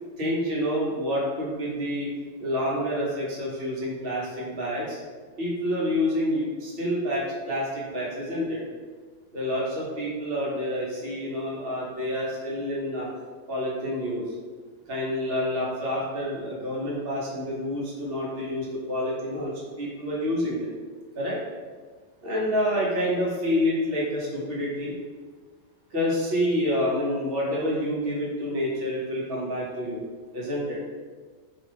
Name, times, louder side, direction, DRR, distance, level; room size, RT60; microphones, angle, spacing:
voice 1, 0.2-2.1 2.4-5.0 5.4-8.6 9.3-13.1 13.5-14.3 14.9-20.7 21.1-21.4 22.2-24.9 25.9-30.0 30.3-30.8, equal, 55° right, -5 dB, 1.0 m, -28 dB
2.7 x 2.3 x 3.2 m, 1.5 s
omnidirectional pair, 1.3 m